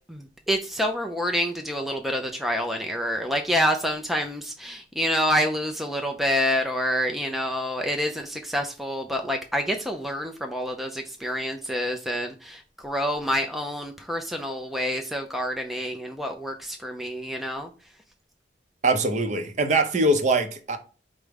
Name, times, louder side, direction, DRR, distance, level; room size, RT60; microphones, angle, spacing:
voice 1, 0.1-17.7, equal, ahead, 0.3 m, -27 dB
voice 2, 18.8-20.8, right 2 dB, 40° right, 0.6 m, -22 dB
4.9 x 2.1 x 4.7 m
head